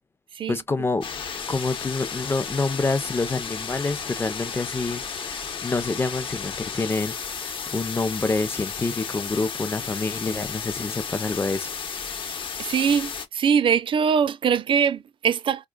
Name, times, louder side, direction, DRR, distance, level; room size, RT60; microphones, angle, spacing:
voice 1, 0.5-1.0 1.5-7.4 7.7-11.7, left 3 dB, 20° left, 0.5 m, -27 dB
sound 1, 1.0-13.3, left 6 dB, 50° left, 0.9 m, -33 dB
voice 2, 12.2-15.7, right 7 dB, 50° right, 0.4 m, -23 dB
4.4 x 2.3 x 2.3 m
cardioid pair, 115°, 11 cm